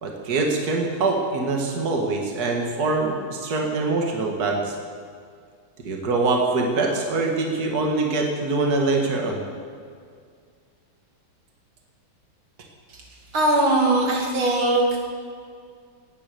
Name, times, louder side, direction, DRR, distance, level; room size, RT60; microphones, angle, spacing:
voice 1, 0.0-4.7 5.8-9.4, right 3 dB, 50° right, 1 dB, 2.3 m, -24 dB
voice 2, 13.3-15.0, right 1 dB, 80° right, -1 dB, 3.5 m, -20 dB
17.5 x 9.8 x 6.9 m, 2.1 s
omnidirectional pair, 2.2 m